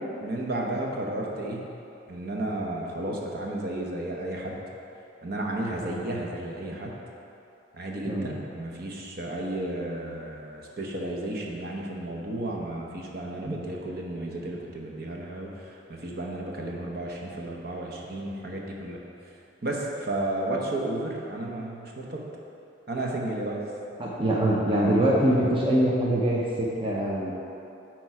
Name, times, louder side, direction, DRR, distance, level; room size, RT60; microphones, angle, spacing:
voice 1, 0.2-1.6 2.1-4.6 5.2-6.9 7.7-19.0 19.6-22.2 22.9-23.6, right 1 dB, 50° right, -1 dB, 0.9 m, -33 dB
voice 2, 24.0-27.4, right 1 dB, 30° right, -4 dB, 0.7 m, -24 dB
8.5 x 4.5 x 4.8 m, 2.7 s
head